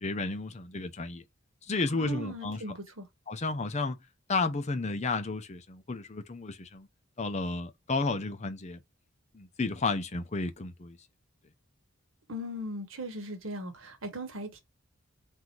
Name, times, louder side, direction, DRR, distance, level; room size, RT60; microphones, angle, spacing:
voice 1, 0.0-1.2 1.7-2.6 3.3-4.0 4.3-6.9 7.2-8.8 9.3-11.0, left 3 dB, 35° left, 0.6 m, -32 dB
voice 2, 1.9-3.1 12.3-14.6, equal, 70° right, 1.2 m, -38 dB
3.8 x 2.7 x 4.4 m
head